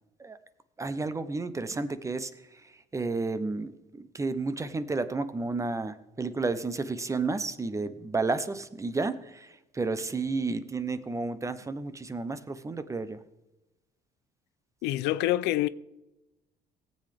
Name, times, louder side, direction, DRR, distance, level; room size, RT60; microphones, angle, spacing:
voice 1, 0.8-2.3 2.9-13.2, right 3 dB, 20° right, 0.7 m, -31 dB
voice 2, 14.8-15.7, left 15 dB, 85° left, 0.5 m, -26 dB
17.5 x 7.8 x 3.4 m
cardioid pair, 110°, 17 cm